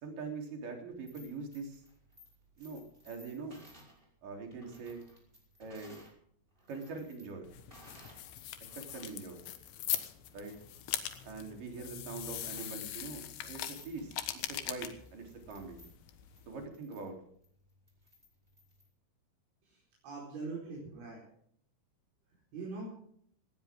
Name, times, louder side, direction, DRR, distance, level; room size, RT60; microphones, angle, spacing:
voice 1, 0.0-1.8 2.6-3.6 4.2-5.0 5.6-6.0 6.7-7.5 8.8-9.4 10.3-10.5 11.2-15.8 16.5-17.2, right 4 dB, 45° right, 2 dB, 4.6 m, -43 dB
sound 1, 0.9-6.2 6.5-8.3 8.6-18.9, equal, 10° right, 5.1 m, -60 dB
sound 2, 7.4-16.7, left 12 dB, 70° left, 3.5 m, -41 dB
voice 2, 19.6-21.2 22.5-23.0, right 3 dB, 65° right, -3 dB, 6.9 m, -42 dB
18.5 x 18.0 x 3.7 m, 0.64 s
omnidirectional pair, 5.9 m